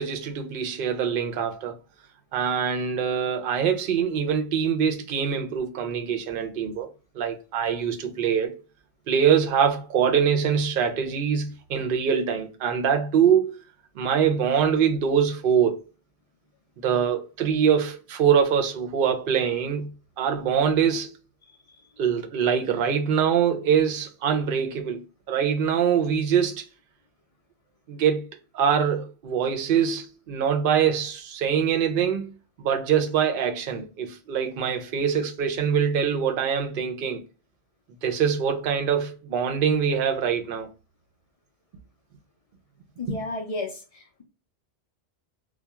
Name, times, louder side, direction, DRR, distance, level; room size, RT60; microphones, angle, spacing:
voice 1, 0.0-1.7 2.3-6.9 7.1-8.6 9.1-13.6 14.0-15.8 16.8-19.9 20.2-21.1 22.0-26.6 27.9-28.2 28.5-32.3 32.6-37.2 38.0-40.7 43.1-43.2, right 7 dB, 60° right, 0.7 m, -24 dB
voice 2, 43.0-44.2, left 2 dB, 55° left, 0.4 m, -33 dB
2.2 x 2.2 x 2.8 m
omnidirectional pair, 1.1 m